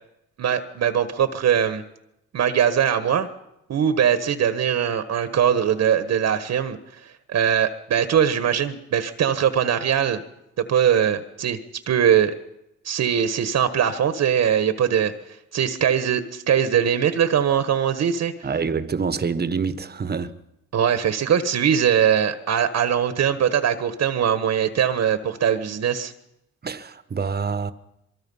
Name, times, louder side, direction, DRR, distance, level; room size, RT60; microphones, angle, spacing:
voice 1, 0.4-1.8 2.3-3.3 3.7-10.2 10.6-11.6 11.9-12.3 12.8-18.3 20.7-26.1, right 8 dB, 60° right, 1.4 m, -21 dB
voice 2, 18.4-20.4 26.6-27.7, right 5 dB, 30° right, 1.3 m, -26 dB
23.5 x 23.5 x 5.6 m
cardioid pair, 90°, 30 cm